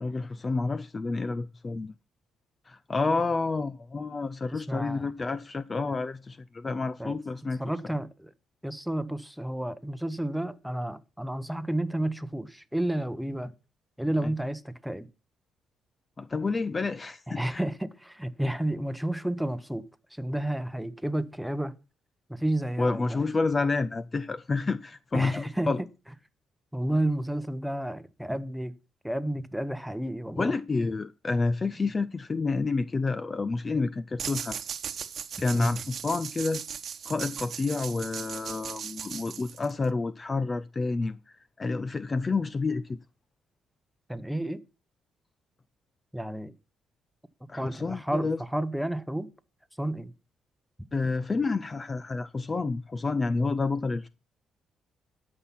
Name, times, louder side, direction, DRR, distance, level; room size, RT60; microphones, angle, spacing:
voice 1, 0.0-1.9 2.7-7.6 14.2-14.3 16.2-17.6 22.8-25.8 30.4-34.6 35.4-36.6 37.1-41.2 41.6-43.0 47.5-48.4 50.9-54.1, left 3 dB, 30° left, 0.5 m, -29 dB
voice 2, 4.5-5.1 7.0-7.2 7.6-8.3 8.6-13.5 14.0-15.1 17.3-19.8 20.1-21.7 22.3-23.3 25.1-25.7 26.7-28.7 29.0-30.5 35.5-35.8 44.1-44.6 46.1-46.5 47.5-49.3 49.8-50.1, right 1 dB, ahead, 0.9 m, -31 dB
sound 1, 34.2-39.9, right 8 dB, 55° right, 1.0 m, -38 dB
12.5 x 5.7 x 5.7 m
cardioid pair, 90°, 0 cm